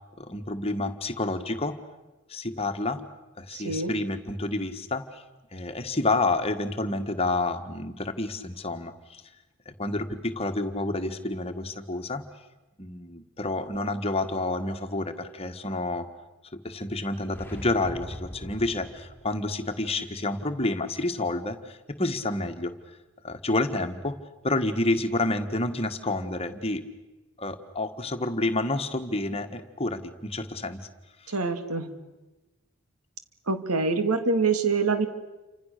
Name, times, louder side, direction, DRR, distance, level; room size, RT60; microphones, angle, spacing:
voice 1, 0.2-1.8 2.3-3.0 3.4-5.2 5.5-9.2 9.6-12.2 12.8-16.1 16.6-22.7 23.2-24.2 24.4-26.8 27.4-30.8 31.2-31.3, left 2 dB, 25° left, 8 dB, 1.6 m, -29 dB
voice 2, 3.5-3.9 31.3-31.9 33.5-35.1, right 4 dB, 85° right, 8 dB, 2.6 m, -25 dB
sound 1, 17.2-19.4, left 1 dB, 10° left, 2.5 m, -41 dB
29.0 x 26.0 x 6.7 m, 1.1 s
head